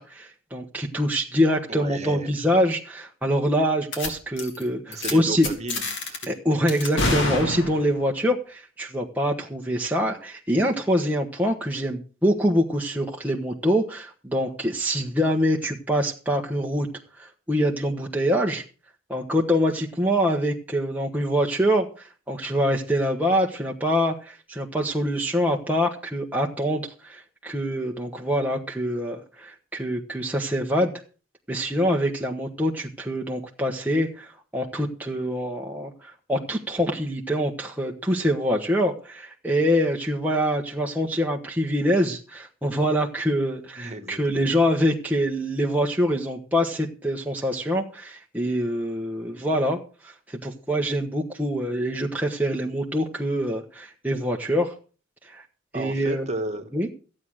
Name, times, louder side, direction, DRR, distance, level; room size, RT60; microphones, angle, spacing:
voice 1, 0.0-5.5 6.3-16.9 17.2-18.6 19.1-30.9 31.5-54.7 55.2-55.4 55.7-56.3 56.7-56.9, equal, 10° right, -1 dB, 1.2 m, -25 dB
voice 2, 1.7-2.3 4.8-6.2 43.8-44.6 55.7-56.6, right 1 dB, 35° right, 6 dB, 1.7 m, -34 dB
sound 1, 3.9-4.1 4.4-4.6 4.9-5.1 5.4-6.2 6.7-8.0, left 2 dB, 60° left, 3.5 m, -27 dB
15.0 x 8.8 x 6.4 m, 0.37 s
head